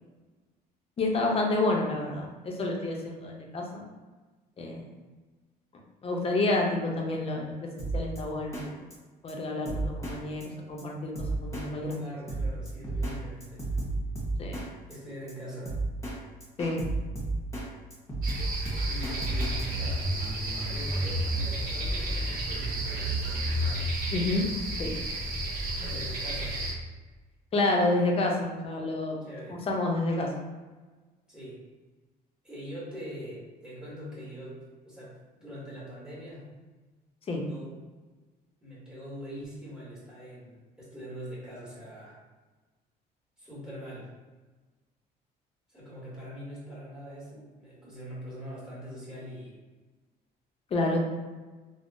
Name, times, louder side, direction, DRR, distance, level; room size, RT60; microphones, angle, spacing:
voice 1, 1.0-3.8 4.6-4.8 6.0-8.7 9.2-11.1 11.4-12.2 14.4-14.6 16.6-16.9 24.1-24.5 24.8-24.9 27.5-29.2 29.5-30.3 37.3-37.4 50.7-51.0, left 2 dB, 35° left, 0 dB, 0.6 m, -29 dB
Drum kit, 7.8-8.2 8.5-8.7 8.9-9.0 9.3-9.4 9.7-10.2 10.4-10.5 10.8-10.9 11.2-11.7 11.9-12.0 12.3-13.2 13.4-14.7 14.9-15.0 15.3-15.4 15.7-16.2 16.4-17.7 17.9-19.6, right 2 dB, 15° left, 1.1 m, -32 dB
voice 2, 11.9-13.8 14.9-15.8 18.8-20.0 20.7-23.9 25.8-26.6 29.2-29.6 31.3-31.6 32.4-36.5 37.4-37.8 38.6-42.2 43.4-44.1 45.7-49.6, equal, 5° right, -8 dB, 1.4 m, -43 dB
sound 1, 18.2-26.7, right 1 dB, 60° right, 0.7 m, -31 dB
3.4 x 2.1 x 2.6 m, 1.3 s
cardioid pair, 110°, 17 cm